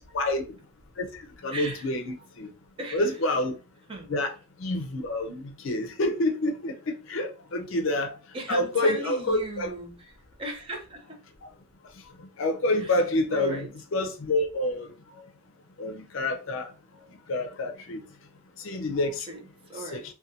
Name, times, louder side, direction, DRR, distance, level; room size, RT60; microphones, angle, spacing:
voice 1, 1.0-2.5 2.9-3.6 4.1-4.3 4.6-8.2 8.5-9.7 12.4-13.7 13.9-14.9 15.8-16.7 17.3-18.0 18.6-19.3 19.8-20.0, left 1 dB, 65° left, 0.5 m, -28 dB
voice 2, 1.5-1.9 2.8-3.0 3.9-4.1 8.3-10.1 10.4-11.1 12.8-12.9 13.3-13.7 19.3-20.0, right 1 dB, 25° right, 0.5 m, -36 dB
2.5 x 2.2 x 2.6 m
head